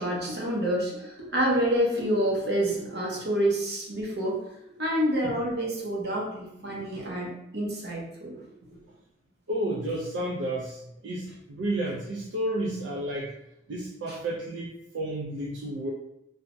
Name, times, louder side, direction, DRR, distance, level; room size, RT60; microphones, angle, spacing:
voice 1, 0.0-4.5 4.8-8.8 14.1-14.2, right 1 dB, 65° right, -2 dB, 0.8 m, -28 dB
voice 2, 9.5-13.3 13.7-15.9, right 1 dB, 80° right, -2 dB, 0.4 m, -31 dB
3.2 x 2.0 x 2.5 m, 0.82 s
head